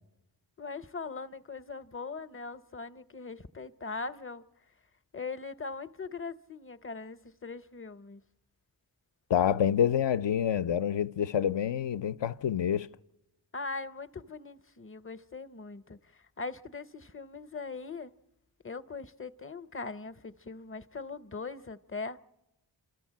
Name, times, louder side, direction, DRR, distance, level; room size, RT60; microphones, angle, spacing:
voice 1, 0.6-4.4 5.1-8.2 13.5-18.1 18.6-22.2, left 4 dB, 30° left, 0.7 m, -40 dB
voice 2, 9.3-12.9, left 9 dB, 70° left, 0.6 m, -27 dB
28.0 x 13.5 x 7.4 m
cardioid pair, 55°, 45 cm